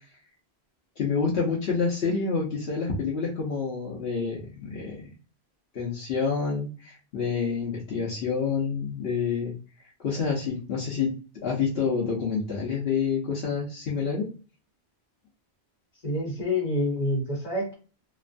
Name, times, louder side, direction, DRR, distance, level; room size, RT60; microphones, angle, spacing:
voice 1, 1.0-5.1 5.7-9.5 10.0-14.3, left 5 dB, 70° left, -5 dB, 1.0 m, -28 dB
voice 2, 16.0-17.7, left 1 dB, 45° left, -3 dB, 1.4 m, -27 dB
3.0 x 2.3 x 2.5 m, 0.36 s
omnidirectional pair, 1.1 m